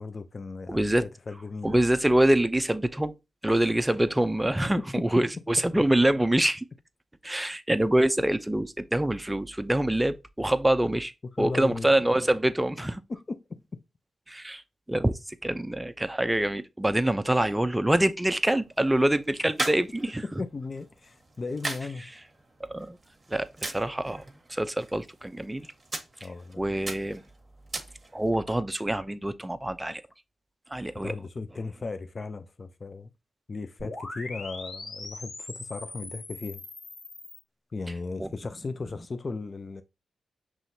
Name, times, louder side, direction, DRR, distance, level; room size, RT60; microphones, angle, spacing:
voice 1, 0.0-1.8 3.5-3.6 11.4-11.9 13.1-13.4 20.4-22.1 26.2-26.7 31.0-33.1 33.5-36.6 37.7-39.8, left 3 dB, 45° left, 0.5 m, -36 dB
voice 2, 0.7-1.0 1.6-3.1 3.4-6.7 7.2-11.1 11.4-13.0 14.3-14.6 14.9-20.4 22.6-23.0 23.3-24.2 24.5-25.7 26.6-27.2 28.1-30.0 30.7-31.1 38.2-38.3, right 1 dB, 15° right, 0.5 m, -25 dB
sound 1, 18.3-28.4, right 2 dB, 35° right, 1.2 m, -40 dB
sound 2, 33.8-37.4, left 2 dB, 65° left, 1.4 m, -41 dB
5.6 x 3.0 x 2.7 m
supercardioid pair, 50°, 0 cm